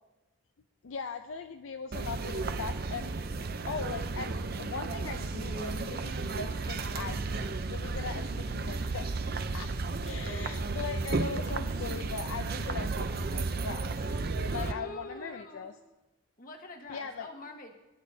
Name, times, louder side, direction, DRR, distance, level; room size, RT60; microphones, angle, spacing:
voice 1, 0.8-3.1 3.7-9.1 9.4-9.7 10.0-14.0 14.5-15.7 16.9-17.3, left 5 dB, 65° left, 7 dB, 0.5 m, -40 dB
sound 1, 1.9-14.7, right 3 dB, 45° right, 0.6 m, -33 dB
voice 2, 14.5-15.7 16.4-17.8, left 2 dB, 40° left, 2 dB, 1.4 m, -45 dB
22.0 x 10.5 x 2.7 m, 1.0 s
head